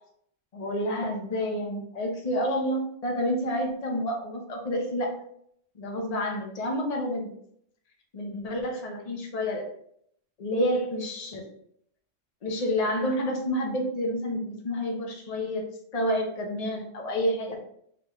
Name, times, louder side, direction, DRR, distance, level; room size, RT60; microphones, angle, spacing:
voice 1, 0.5-5.2 5.7-7.3 8.1-9.6 10.4-11.4 12.4-15.6 15.9-17.6, equal, 35° left, 0 dB, 0.8 m, -29 dB
3.7 x 3.4 x 3.4 m, 0.69 s
omnidirectional pair, 1.3 m